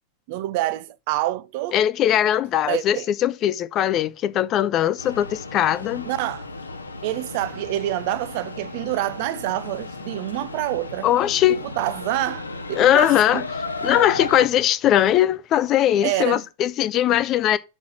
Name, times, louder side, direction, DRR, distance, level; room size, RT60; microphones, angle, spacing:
voice 1, 0.3-1.8 2.7-3.1 6.0-6.5 7.0-11.1 11.6-13.5 16.0-16.4, right 15 dB, 50° right, 0.6 m, -27 dB
voice 2, 1.7-6.1 11.0-11.6 12.8-13.4 13.8-17.6, left 12 dB, 35° left, 0.6 m, -20 dB
sound 1, 5.0-14.5, left 3 dB, 80° left, 0.9 m, -34 dB
6.3 x 5.4 x 7.1 m
figure-of-eight pair, 90°, 0 cm